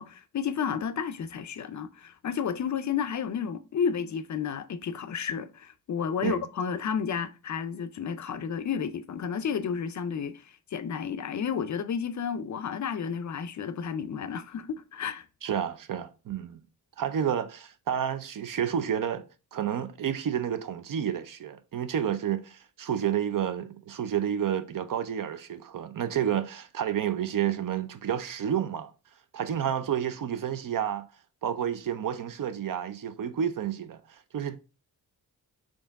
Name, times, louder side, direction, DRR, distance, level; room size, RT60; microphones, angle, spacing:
voice 1, 0.0-15.3, left 7 dB, 50° left, 0.4 m, -32 dB
voice 2, 15.4-16.6 17.0-19.2 19.5-28.9 29.3-31.1 31.4-34.6, right 9 dB, 55° right, 0.5 m, -30 dB
4.4 x 3.0 x 3.4 m
cardioid pair, 90°, 39 cm